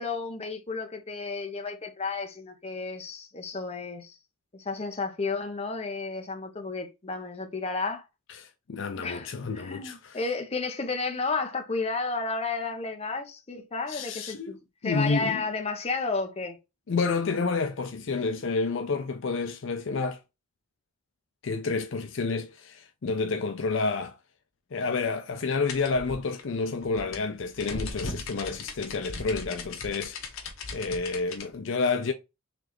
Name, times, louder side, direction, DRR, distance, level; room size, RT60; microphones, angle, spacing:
voice 1, 0.0-4.2 4.5-8.0 9.0-14.6 14.8-16.6, left 4 dB, 30° left, 0.7 m, -32 dB
voice 2, 8.4-10.2 13.9-14.5 14.8-15.4 16.9-20.2 21.4-24.1 24.7-30.4 30.7-32.1, left 4 dB, 60° left, 0.5 m, -29 dB
sound 1, 25.7-31.5, left 3 dB, 75° left, 1.0 m, -38 dB
4.1 x 3.3 x 3.0 m
head